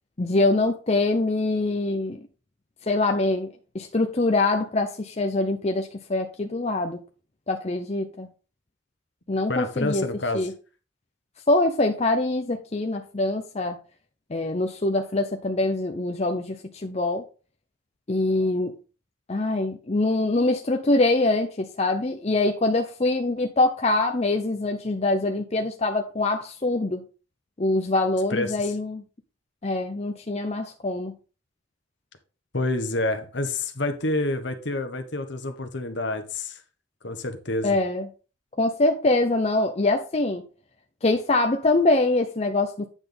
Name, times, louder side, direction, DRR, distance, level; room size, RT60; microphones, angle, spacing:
voice 1, 0.2-2.2 2.9-7.0 7.5-8.3 9.3-10.0 10.3-10.5 11.5-13.8 14.3-17.2 18.1-18.8 19.3-27.0 27.6-29.0 29.6-31.1 37.6-38.1 38.6-40.4 41.0-42.9, left 2 dB, 30° left, 5 dB, 0.6 m, -24 dB
voice 2, 9.5-10.5 28.3-28.7 32.5-36.6 37.0-37.8, left 2 dB, 60° left, 7 dB, 1.2 m, -28 dB
9.0 x 6.1 x 3.4 m, 0.34 s
head